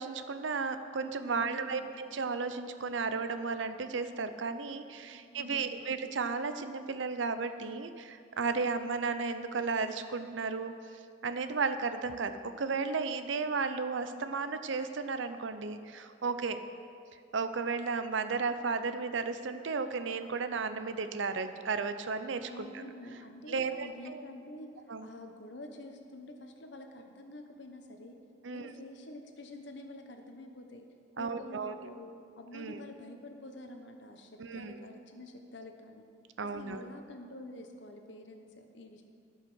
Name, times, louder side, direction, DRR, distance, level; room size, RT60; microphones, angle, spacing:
voice 1, 0.0-10.7 11.2-16.6 17.3-22.8 23.5-24.2 24.9-25.1 28.4-28.7 31.2-31.7 32.5-32.8 34.4-34.8 36.4-36.9, right 4 dB, 75° right, 10 dB, 0.6 m, -34 dB
voice 2, 1.3-1.9 5.1-5.9 22.5-24.7 25.0-28.2 28.5-30.8 31.1-36.0 36.4-39.0, left 1 dB, 65° left, 4 dB, 1.0 m, -48 dB
14.5 x 5.5 x 6.2 m, 2.4 s
head